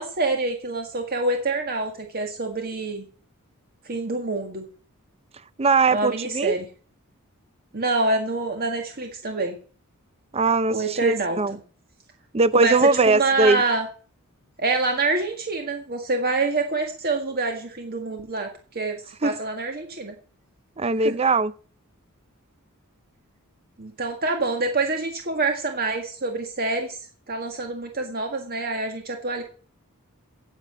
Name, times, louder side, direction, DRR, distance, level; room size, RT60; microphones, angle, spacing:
voice 1, 0.0-3.0 3.8-4.6 5.9-6.7 7.7-9.5 10.7-11.4 12.5-13.9 14.6-20.1 21.0-21.1 23.8-27.0 27.3-29.4, right 3 dB, 45° right, 1.7 m, -26 dB
voice 2, 5.6-6.6 10.3-11.6 12.3-13.6 19.2-19.3 20.8-21.5, right 3 dB, 30° right, 0.6 m, -20 dB
10.5 x 7.8 x 8.0 m
head